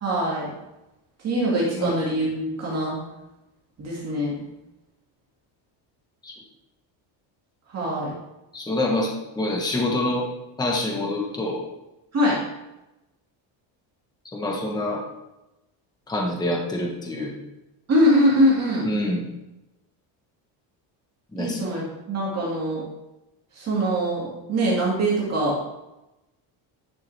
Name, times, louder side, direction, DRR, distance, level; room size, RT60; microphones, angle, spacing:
voice 1, 0.0-0.5 1.2-2.9 3.8-4.4 7.7-8.1 12.1-12.4 17.9-18.9 21.4-21.8 22.1-22.8 23.6-25.6, equal, 30° right, -5 dB, 2.1 m, -22 dB
voice 2, 8.5-10.3 10.6-11.6 14.3-15.0 16.1-17.3 18.8-19.3 21.3-21.6, left 1 dB, 10° left, -1 dB, 1.1 m, -26 dB
10.0 x 6.8 x 3.4 m, 0.96 s
cardioid pair, 170°, 48 cm